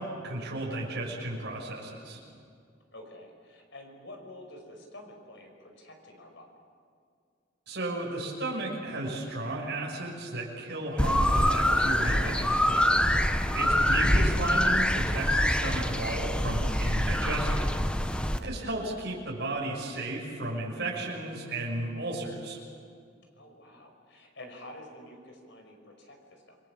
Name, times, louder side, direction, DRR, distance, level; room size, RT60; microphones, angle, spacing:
voice 1, 0.0-2.2 7.7-17.8 18.4-22.6, right 2 dB, 55° right, -2 dB, 6.5 m, -34 dB
voice 2, 2.9-6.5 13.5-13.9 18.4-18.7 23.4-26.6, left 1 dB, 60° left, 3 dB, 5.4 m, -48 dB
sound 1, 11.0-18.4, left 1 dB, 5° left, 0.9 m, -25 dB
28.5 x 22.0 x 7.4 m, 2.3 s
head